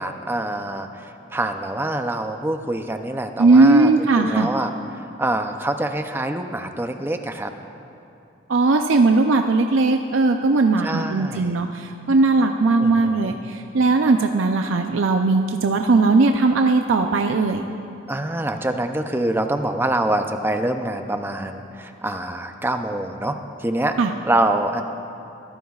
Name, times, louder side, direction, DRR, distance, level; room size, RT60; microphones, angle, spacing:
voice 1, 0.0-4.7 5.0-7.5 10.8-11.6 12.8-13.4 18.1-24.0 24.2-24.8, right 1 dB, 10° right, 6 dB, 0.5 m, -25 dB
voice 2, 3.4-4.5 8.5-17.7 24.0-24.1, right 3 dB, 80° right, 5 dB, 0.5 m, -18 dB
23.0 x 14.5 x 2.4 m, 2.6 s
head